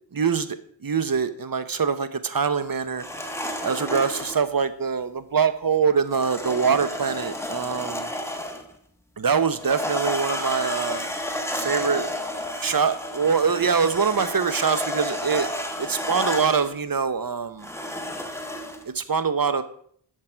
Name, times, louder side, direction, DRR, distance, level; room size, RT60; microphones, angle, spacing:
voice 1, 0.1-0.5 0.8-3.3 3.6-8.1 9.2-11.1 11.5-12.1 12.6-17.7 18.8-19.6, right 6 dB, 50° right, 11 dB, 0.9 m, -24 dB
sound 1, 3.0-4.4 6.1-8.7 9.5-16.7 17.6-18.8, left 1 dB, 5° left, 1.4 m, -31 dB
11.0 x 6.6 x 4.5 m, 0.63 s
wide cardioid pair, 50°, 45 cm